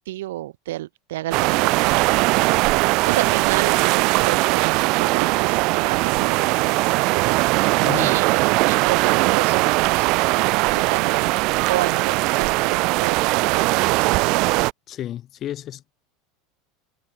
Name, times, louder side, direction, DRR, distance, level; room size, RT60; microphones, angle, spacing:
voice 1, 0.0-10.2 10.7-11.3 11.6-14.2, right 15 dB, 90° right, 1.4 m, -31 dB
sound 1, 1.3-14.7, right 24 dB, 55° right, 0.4 m, -20 dB
voice 2, 7.8-8.2 14.9-15.9, left 12 dB, 35° left, 2.4 m, -31 dB
supercardioid pair, 140°, 0 cm